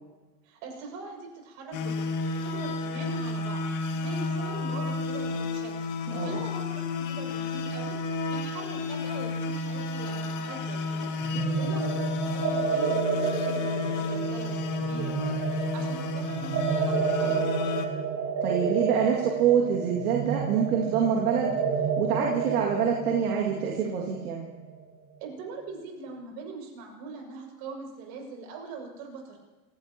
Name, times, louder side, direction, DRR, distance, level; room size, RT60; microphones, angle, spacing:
voice 1, 0.4-17.9 25.2-29.4, right 4 dB, 55° right, 1 dB, 6.6 m, -42 dB
sound 1, 1.7-17.9, left 3 dB, 40° left, 2.1 m, -31 dB
voice 2, 6.1-6.4 11.3-11.8 18.4-21.6 22.0-24.5, right 7 dB, 75° right, -2 dB, 2.4 m, -26 dB
sound 2, 11.2-24.8, right 6 dB, 35° right, 2.1 m, -31 dB
27.0 x 16.0 x 3.0 m, 1.2 s
hypercardioid pair, 90°, 45 cm